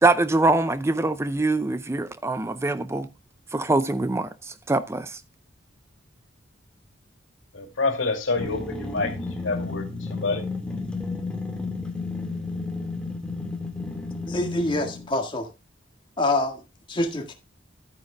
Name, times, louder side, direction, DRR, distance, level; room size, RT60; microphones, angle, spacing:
voice 1, 0.0-3.1 3.5-5.2, right 2 dB, 15° right, 0.4 m, -23 dB
voice 2, 7.5-10.4, left 3 dB, 85° left, 2.5 m, -28 dB
sound 1, 8.4-15.1, left 3 dB, 5° left, 1.8 m, -32 dB
voice 3, 14.3-15.5 16.2-16.6 16.9-17.3, left 2 dB, 25° left, 1.7 m, -25 dB
12.5 x 9.3 x 2.3 m
head